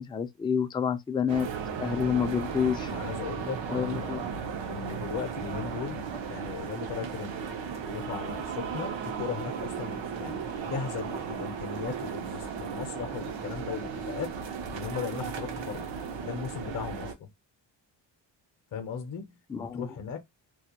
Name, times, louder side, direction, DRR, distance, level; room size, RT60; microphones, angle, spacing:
voice 1, 0.0-1.5 1.8-2.9 3.7-4.3 19.5-19.9, left 7 dB, 10° left, 0.3 m, -28 dB
sound 1, 1.3-17.1, right 6 dB, 75° right, 0.7 m, -35 dB
voice 2, 2.9-4.3 4.7-7.4 7.8-14.4 14.7-15.9 16.2-17.3 18.7-20.2, left 7 dB, 45° left, 0.6 m, -37 dB
2.3 x 2.1 x 2.8 m
cardioid pair, 80°, 44 cm